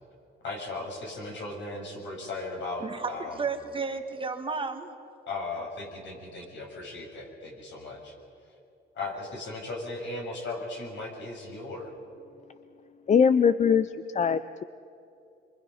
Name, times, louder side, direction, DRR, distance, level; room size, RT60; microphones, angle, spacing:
voice 1, 0.4-3.4 5.3-8.2 8.9-11.9, left 2 dB, 65° left, 0 dB, 6.6 m, -37 dB
voice 2, 2.8-4.9, right 4 dB, 25° right, 6 dB, 1.5 m, -33 dB
voice 3, 13.1-14.6, left 7 dB, 35° left, 13 dB, 0.5 m, -22 dB
27.0 x 24.5 x 5.6 m, 2.7 s
cardioid pair, 120°, 21 cm